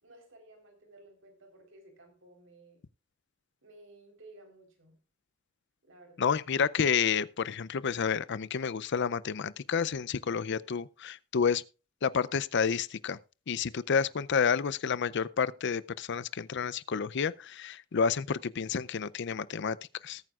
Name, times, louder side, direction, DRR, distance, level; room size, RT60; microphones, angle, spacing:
voice 1, 0.0-2.8 3.6-5.0 5.8-6.3, right 2 dB, 70° right, 3.9 m, -56 dB
voice 2, 6.2-11.6 12.0-13.2 13.5-19.8 20.0-20.2, left 6 dB, 60° left, 0.5 m, -30 dB
20.0 x 9.1 x 2.4 m
head